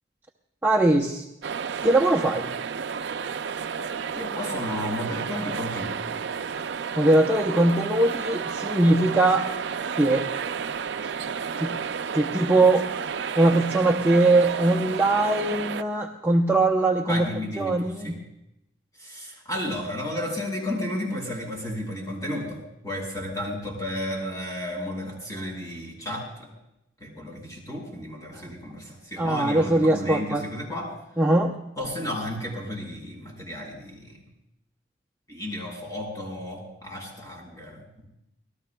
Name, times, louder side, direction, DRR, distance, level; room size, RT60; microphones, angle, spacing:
voice 1, 0.6-1.2 1.8-2.5 7.0-9.5 10.0-10.3 11.0-11.1 11.6-11.8 12.1-12.9 13.4-17.3 17.6-18.2 29.2-30.4 31.2-31.6, right 2 dB, 10° right, 0 dB, 0.6 m, -21 dB
sound 1, 1.4-15.8, right 6 dB, 65° right, 0.4 m, -31 dB
voice 2, 4.1-6.2 17.1-18.2 19.0-26.5 27.0-31.0 31.8-34.2 35.3-38.1, left 1 dB, 20° left, -2 dB, 5.5 m, -33 dB
27.0 x 18.5 x 2.3 m, 0.86 s
head